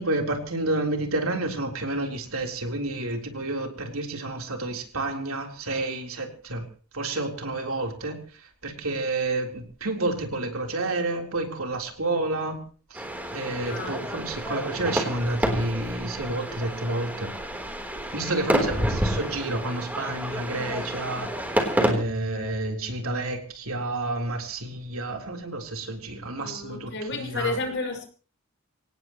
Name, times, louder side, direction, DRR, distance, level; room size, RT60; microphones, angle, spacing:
voice 1, 0.0-6.7 6.9-12.6 12.9-13.0 13.3-17.3 18.1-27.6, right 2 dB, 70° right, 2 dB, 3.8 m, -30 dB
sound 1, 12.9-21.9, right 1 dB, 10° right, 3.6 m, -29 dB
voice 2, 13.7-14.0 18.6-18.9 26.4-28.0, left 3 dB, 60° left, 3 dB, 5.9 m, -32 dB
25.5 x 18.0 x 3.1 m, 0.38 s
head